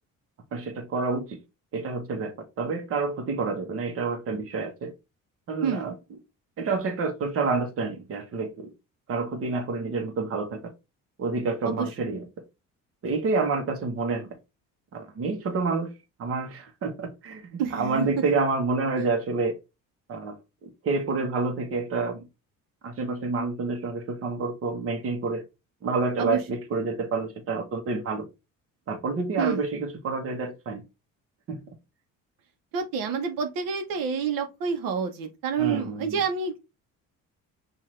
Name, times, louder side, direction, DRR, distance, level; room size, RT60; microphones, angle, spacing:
voice 1, 0.5-1.4 1.7-4.9 5.5-5.9 6.6-8.7 9.1-10.6 11.2-12.2 13.0-14.3 14.9-15.9 16.2-19.6 20.1-20.3 20.6-22.2 22.8-25.4 25.8-28.3 28.9-30.8 31.5-31.7 35.6-36.0, right 3 dB, 45° right, 1.2 m, -28 dB
voice 2, 5.6-5.9 11.6-11.9 17.6-18.2 19.0-19.1 26.2-26.4 29.4-29.6 32.7-36.6, right 6 dB, 90° right, 1.1 m, -28 dB
5.8 x 2.7 x 3.2 m
cardioid pair, 150°, 33 cm